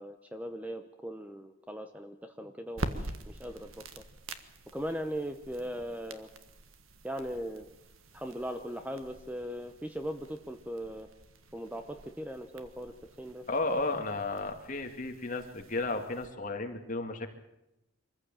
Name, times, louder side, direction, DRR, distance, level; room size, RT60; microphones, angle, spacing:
voice 1, 0.0-3.8 4.7-6.3 7.0-7.7 8.1-11.1 11.5-13.4, equal, 5° right, 8 dB, 0.9 m, -39 dB
sound 1, 2.7-16.3, right 2 dB, 85° right, 1.6 m, -46 dB
voice 2, 13.5-17.3, left 2 dB, 40° left, 4 dB, 2.3 m, -33 dB
24.5 x 15.0 x 9.1 m, 0.89 s
head